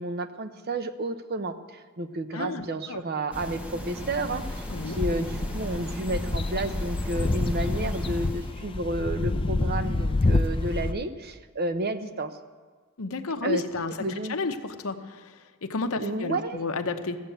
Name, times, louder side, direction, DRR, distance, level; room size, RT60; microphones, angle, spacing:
voice 1, 0.0-12.4 13.4-13.6 14.0-14.4 16.0-16.6, right 2 dB, 45° right, 10 dB, 0.7 m, -31 dB
voice 2, 2.3-3.0 4.7-5.0 13.0-13.9 14.3-15.3 15.6-17.2, left 3 dB, 65° left, 7 dB, 0.9 m, -31 dB
sound 1, 3.3-8.5, equal, 5° right, 1.0 m, -37 dB
sound 2, 4.0-10.9, left 2 dB, 25° left, 0.4 m, -28 dB
15.0 x 8.3 x 7.9 m, 1.5 s
head